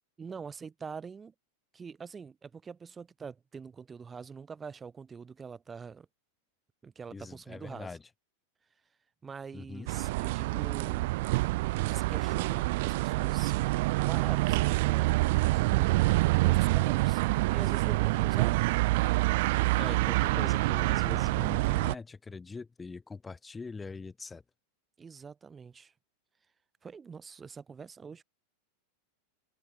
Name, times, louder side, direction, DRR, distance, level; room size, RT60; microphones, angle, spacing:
voice 1, 0.2-1.3 1.7-6.1 6.8-8.0 9.2-11.1 11.8-13.5 14.1-15.1 15.5-18.6 25.0-25.9 26.8-28.2, right 5 dB, 15° right, 5.9 m, -44 dB
voice 2, 7.1-8.0 9.5-9.9 19.8-24.4, left 4 dB, 10° left, 3.7 m, -42 dB
sound 1, 9.9-21.9, right 21 dB, 50° right, 0.4 m, -27 dB
figure-of-eight pair, 90°, 0 cm